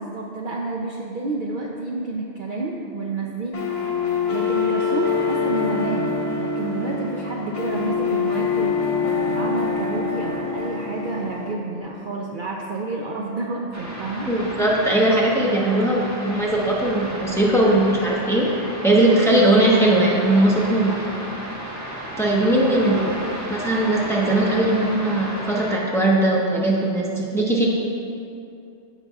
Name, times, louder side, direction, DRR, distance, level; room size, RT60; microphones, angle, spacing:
voice 1, 0.0-3.7 4.0-8.8 9.3-14.3, right 3 dB, 55° right, -2 dB, 0.7 m, -29 dB
sound 1, 3.5-11.5, left 5 dB, 80° left, 1.3 m, -25 dB
sound 2, 13.7-25.8, equal, 15° right, 1.0 m, -33 dB
voice 2, 14.3-18.5 18.8-21.0 22.2-23.1 23.5-27.7, right 1 dB, ahead, -4 dB, 1.0 m, -19 dB
14.5 x 5.8 x 2.4 m, 2.5 s
omnidirectional pair, 1.2 m